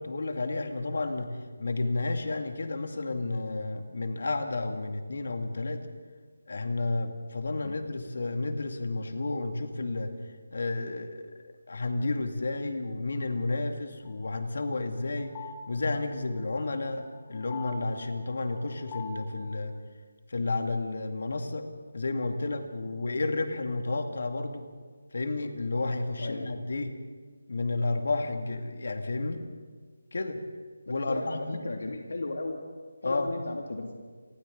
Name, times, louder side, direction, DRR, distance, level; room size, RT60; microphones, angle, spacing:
voice 1, 0.0-5.8 6.5-10.1 10.5-15.3 15.7-19.8 20.3-21.7 21.9-24.7 25.1-26.9 27.5-29.4 30.1-30.4 30.9-31.6 33.0-33.3, left 2 dB, 55° left, 6 dB, 2.3 m, -31 dB
sound 1, 14.1-19.4, left 4 dB, 10° left, 1.2 m, -45 dB
voice 2, 26.2-26.5 30.9-32.6 33.0-34.0, left 2 dB, 70° left, 2 dB, 2.5 m, -35 dB
29.0 x 24.5 x 4.0 m, 1.5 s
figure-of-eight pair, 175°, 0 cm